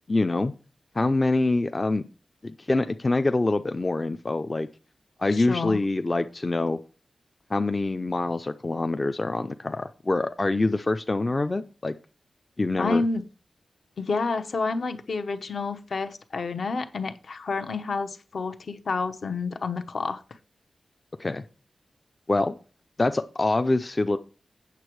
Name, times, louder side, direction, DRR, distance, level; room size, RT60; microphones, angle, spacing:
voice 1, 0.1-0.5 1.0-2.0 2.4-4.7 5.2-6.8 7.5-11.9 12.6-13.0 21.2-21.4 22.3-22.6 23.0-24.2, left 2 dB, 25° left, 9 dB, 0.4 m, -25 dB
voice 2, 5.3-5.8 12.8-13.2 14.0-20.2, left 4 dB, 60° left, 8 dB, 0.9 m, -29 dB
8.3 x 6.9 x 4.6 m, 0.34 s
wide cardioid pair, 140°, 0 cm